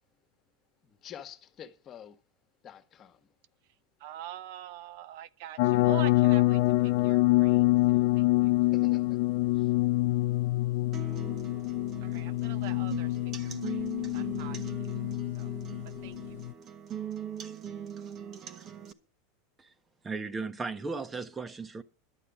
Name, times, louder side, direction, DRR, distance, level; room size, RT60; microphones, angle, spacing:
voice 1, 0.8-2.2 2.6-3.3 8.7-9.2 9.5-9.7, left 9 dB, 35° left, 1.5 m, -48 dB
voice 2, 4.0-7.6 7.9-8.0 8.4-8.5 12.0-13.2 13.4-13.8 14.1-14.6 15.4-15.5 16.0-16.4, right 12 dB, 65° right, 0.6 m, -44 dB
sound 1, 5.6-16.5, left 20 dB, 65° left, 0.5 m, -26 dB
sound 2, 10.9-18.9, right 8 dB, 40° right, 1.3 m, -41 dB
voice 3, 20.0-21.8, right 4 dB, 15° right, 1.1 m, -36 dB
11.5 x 6.7 x 9.1 m
supercardioid pair, 115°, 0 cm